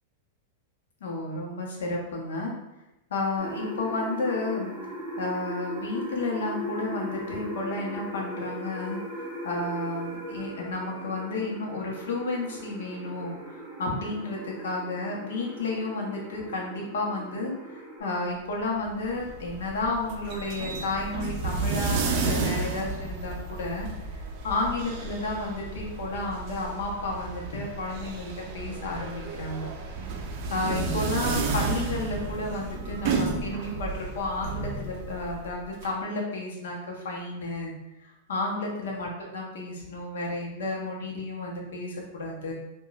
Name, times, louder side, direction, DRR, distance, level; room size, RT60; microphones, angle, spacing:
voice 1, 1.0-2.5 3.1-4.7 5.2-29.7 30.5-37.7 38.3-42.5, left 2 dB, 85° left, -1 dB, 0.8 m, -32 dB
sound 1, 3.4-18.0, right 1 dB, ahead, 1.0 m, -38 dB
sound 2, 18.8-35.9, right 4 dB, 45° right, 0.4 m, -32 dB
3.0 x 2.3 x 2.3 m, 0.93 s
supercardioid pair, 145°, 0 cm